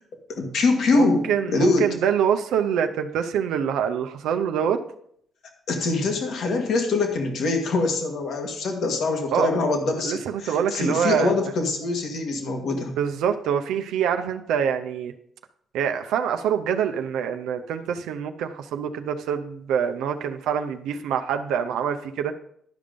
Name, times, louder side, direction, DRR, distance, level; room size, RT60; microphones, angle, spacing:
voice 1, 0.4-1.9 5.7-12.9, left 3 dB, 70° left, 4 dB, 1.8 m, -24 dB
voice 2, 0.9-4.8 9.3-9.5 10.0-11.5 13.0-15.1 15.7-22.3, right 8 dB, 85° right, 7 dB, 0.6 m, -25 dB
11.5 x 5.2 x 5.2 m, 0.68 s
cardioid pair, 90°, 0 cm